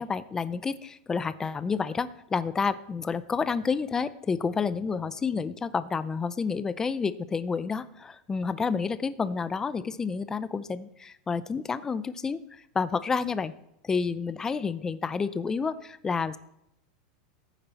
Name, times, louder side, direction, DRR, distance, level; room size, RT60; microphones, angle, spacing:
voice 1, 0.0-13.5 13.8-16.4, left 5 dB, 15° left, 15 dB, 0.5 m, -29 dB
14.0 x 9.1 x 4.1 m, 0.81 s
supercardioid pair, 150°, 4 cm